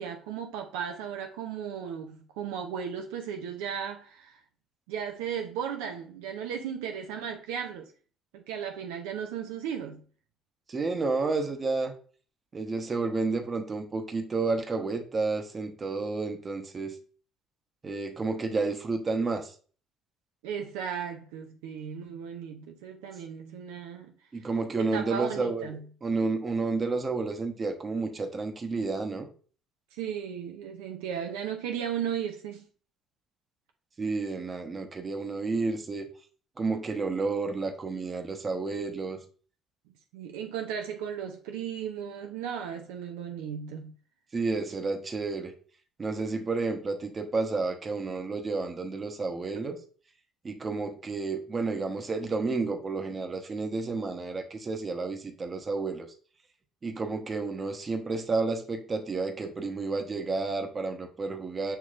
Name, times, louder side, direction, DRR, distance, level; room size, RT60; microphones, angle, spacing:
voice 1, 0.0-4.4 4.9-7.9 8.3-10.0 20.4-24.1 24.8-25.9 29.9-32.7 40.1-43.9, right 8 dB, 85° right, 0.4 m, -35 dB
voice 2, 10.7-11.9 12.5-16.9 17.8-19.5 24.3-25.7 26.0-29.3 34.0-36.1 36.6-39.2 44.3-45.5 46.0-49.8 50.4-56.1 56.8-61.8, right 3 dB, 35° right, 0.9 m, -31 dB
6.6 x 2.9 x 2.4 m
hypercardioid pair, 65°, 0 cm